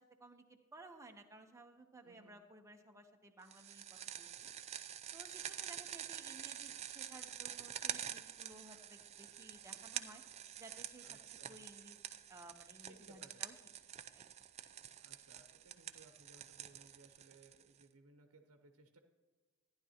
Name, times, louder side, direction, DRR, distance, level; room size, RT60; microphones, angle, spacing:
voice 1, 0.0-3.8 4.2-4.3 5.1-10.2 10.6-11.2 11.5-12.0 12.3-13.5 14.0-14.2, right 2 dB, 15° right, 3 dB, 0.8 m, -57 dB
voice 2, 2.0-2.4 11.0-11.6 12.8-13.4 14.9-19.0, right 3 dB, 85° right, 4 dB, 0.9 m, -63 dB
sound 1, 3.5-17.8, right 10 dB, 30° right, 0.4 m, -47 dB
14.5 x 10.5 x 2.9 m, 1.4 s
head